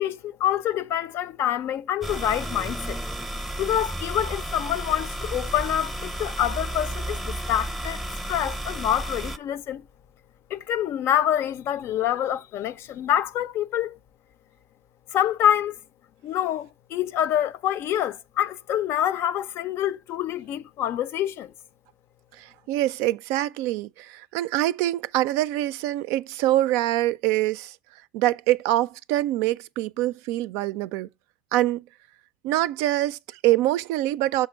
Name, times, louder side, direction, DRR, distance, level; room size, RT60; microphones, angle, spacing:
voice 1, 0.0-3.0 3.6-8.0 8.3-9.8 10.5-14.0 15.1-15.8 16.2-21.5, left 11 dB, 55° left, 0.5 m, -26 dB
sound 1, 2.0-9.4, right 1 dB, 5° right, 0.6 m, -32 dB
voice 2, 22.4-27.8 28.1-31.1 31.5-31.8 32.4-34.5, right 15 dB, 70° right, 0.3 m, -24 dB
6.5 x 4.4 x 4.5 m
supercardioid pair, 85°, 5 cm